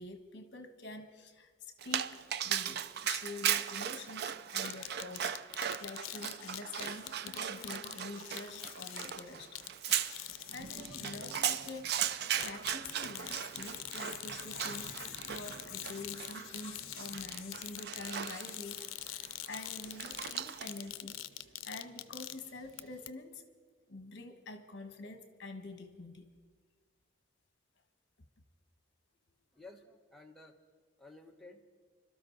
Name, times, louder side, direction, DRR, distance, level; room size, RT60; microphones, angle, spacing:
voice 1, 0.0-2.1 2.4-5.4 5.8-9.6 9.9-23.4 23.9-26.3, left 2 dB, 60° left, 7 dB, 1.3 m, -47 dB
Dog, 1.8-20.9, right 9 dB, 55° right, 0.4 m, -38 dB
sound 1, 4.6-12.0 12.4-22.8 23.1-23.2, left 13 dB, 85° left, 0.5 m, -45 dB
sound 2, 7.0-23.1, right 2 dB, 80° right, 1.1 m, -58 dB
voice 2, 29.5-30.5 31.0-31.6, left 2 dB, ahead, 0 dB, 1.1 m, -54 dB
26.5 x 12.5 x 4.0 m, 1.5 s
head